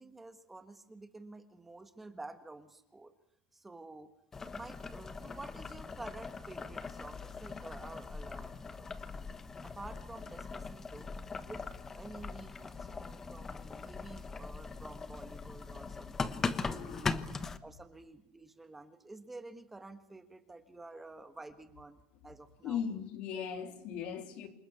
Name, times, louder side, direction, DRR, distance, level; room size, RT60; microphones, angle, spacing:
voice 1, 0.0-3.1 3.5-4.1 4.5-8.9 9.6-11.1 11.4-11.6 11.9-17.3 17.6-22.8, right 2 dB, 10° right, 1.5 m, -50 dB
Boiling, 4.3-17.6, left 4 dB, 15° left, 1.2 m, -40 dB
voice 2, 16.3-17.2 22.6-24.5, left 8 dB, 55° left, 3.8 m, -39 dB
28.0 x 19.5 x 8.3 m
cardioid pair, 155°, 2 cm